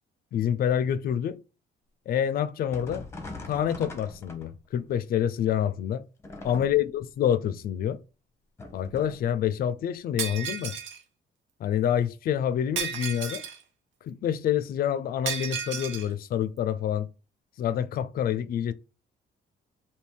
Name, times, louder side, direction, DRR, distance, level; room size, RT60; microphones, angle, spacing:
voice 1, 0.3-1.4 2.1-3.1 3.5-6.0 6.4-8.0 8.7-10.7 11.6-13.4 14.0-17.1 17.6-18.7, left 9 dB, 50° left, 0.4 m, -27 dB
sound 1, 2.7-4.8 6.2-7.0 8.6-9.3, left 3 dB, 15° left, 0.7 m, -42 dB
Shatter, 10.2-11.0 12.8-13.6 15.3-16.1, right 7 dB, 80° right, 0.9 m, -33 dB
3.5 x 2.8 x 4.4 m
cardioid pair, 160°, 19 cm